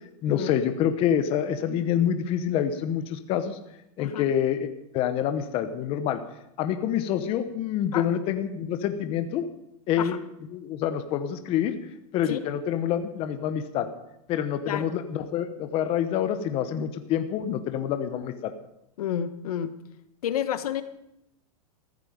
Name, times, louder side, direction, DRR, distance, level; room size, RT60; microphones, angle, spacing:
voice 1, 0.2-3.6 4.0-4.6 4.9-6.2 6.6-9.5 9.9-10.2 10.5-11.7 12.1-13.9 14.3-18.5, left 9 dB, 30° left, 9 dB, 1.0 m, -27 dB
voice 2, 19.0-19.7 20.2-20.8, left 10 dB, 80° left, 11 dB, 1.3 m, -30 dB
15.0 x 13.5 x 5.2 m, 0.81 s
supercardioid pair, 155°, 19 cm